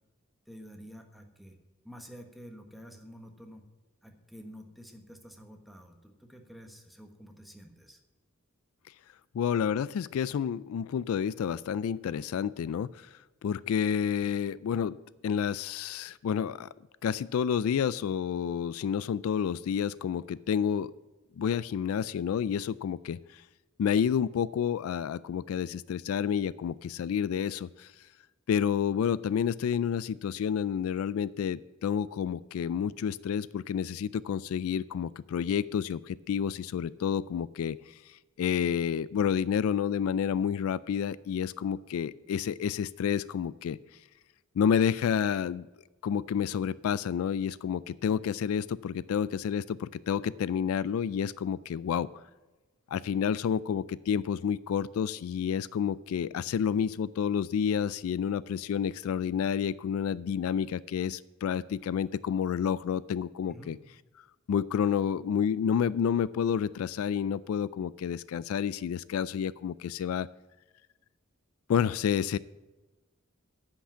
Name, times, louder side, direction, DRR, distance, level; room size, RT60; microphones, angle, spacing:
voice 1, 0.5-1.6 1.8-3.6 4.0-8.0 63.5-63.7, equal, ahead, 3 dB, 1.2 m, -49 dB
voice 2, 9.3-13.1 13.4-15.0 15.2-16.7 17.0-20.9 21.4-23.4 23.8-27.9 28.5-37.8 38.1-43.8 44.6-45.7 46.0-52.1 52.9-63.8 64.5-70.3 71.7-72.4, left 7 dB, 75° left, 19 dB, 0.3 m, -29 dB
10.0 x 5.9 x 8.5 m, 1.2 s
head